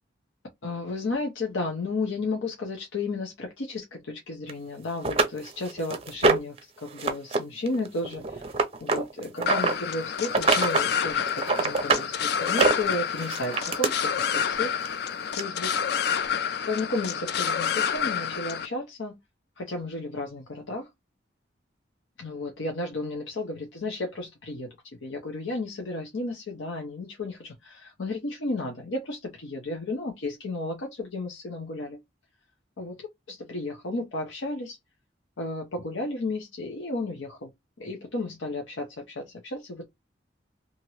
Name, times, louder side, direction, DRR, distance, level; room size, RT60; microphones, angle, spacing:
voice 1, 0.6-8.5 8.8-14.7 15.4-15.7 16.7-19.2 19.6-20.9 22.2-24.7 25.0-32.0 32.8-34.8 35.4-37.5 37.8-39.9, left 2 dB, 90° left, 0.7 m, -33 dB
sound 1, 4.5-4.6 5.0-6.6 7.0-7.4 7.7-9.7 10.2-10.9 11.2-12.1 12.5-13.9 14.9-15.0 15.4-15.5, right 3 dB, 30° right, 0.5 m, -24 dB
sound 2, 9.5-18.7, left 7 dB, 55° left, 0.3 m, -28 dB
2.9 x 2.5 x 2.9 m
head